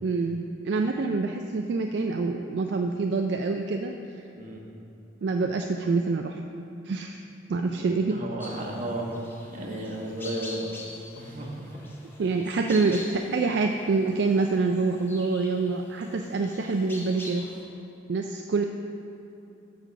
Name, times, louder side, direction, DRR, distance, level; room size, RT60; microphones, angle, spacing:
voice 1, 0.0-3.9 5.2-6.4 6.8-7.2 7.5-8.2 12.2-17.5 18.1-18.6, right 3 dB, 65° right, 4 dB, 0.4 m, -26 dB
voice 2, 8.1-9.1 9.5-10.6 11.2-11.8, right 1 dB, 45° right, -1 dB, 1.2 m, -34 dB
sound 1, 8.4-17.6, left 1 dB, 10° left, 0.9 m, -45 dB
9.5 x 4.0 x 6.5 m, 2.8 s
head